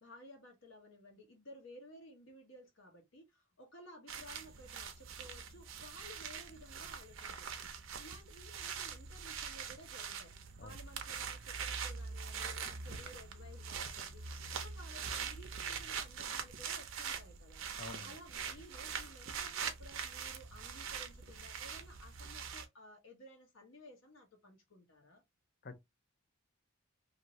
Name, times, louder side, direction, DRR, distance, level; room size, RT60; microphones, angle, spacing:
voice 1, 0.0-7.5 8.0-10.3 10.6-14.2 14.5-17.6 18.0-25.2, left 1 dB, 65° left, 0.9 m, -56 dB
sound 1, 4.1-22.7, right 6 dB, 70° right, 0.6 m, -43 dB
voice 2, 17.8-18.2 25.6-25.8, left 3 dB, 50° left, 0.5 m, -48 dB
2.6 x 2.6 x 2.9 m
head